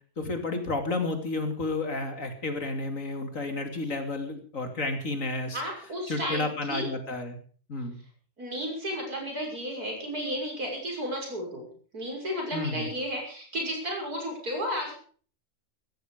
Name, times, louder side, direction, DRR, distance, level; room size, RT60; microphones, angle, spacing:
voice 1, 0.2-5.6 6.1-7.4 7.7-8.0 12.5-12.9, left 2 dB, 60° left, 6 dB, 3.1 m, -31 dB
voice 2, 5.5-6.9 8.4-11.7 11.9-14.9, equal, 85° right, 1 dB, 6.7 m, -33 dB
17.0 x 14.0 x 5.2 m, 0.43 s
omnidirectional pair, 1.6 m